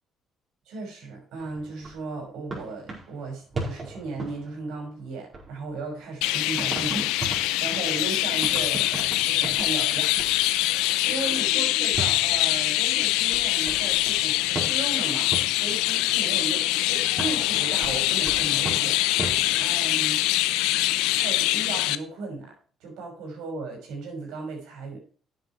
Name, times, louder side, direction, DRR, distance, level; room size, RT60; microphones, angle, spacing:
voice 1, 0.7-7.1 7.4-10.2 10.5-20.2 21.2-22.5 22.8-25.0, right 3 dB, 80° right, 1 dB, 5.7 m, -36 dB
sound 1, 1.4-5.0 5.3-6.1 6.6-11.0 11.9-16.0 17.1-20.3, right 2 dB, 35° right, 4.8 m, -38 dB
Chirp tweet, 6.2-22.0, left 16 dB, 90° left, 0.6 m, -24 dB
9.5 x 8.2 x 4.6 m, 0.41 s
cardioid pair, 85°, 0 cm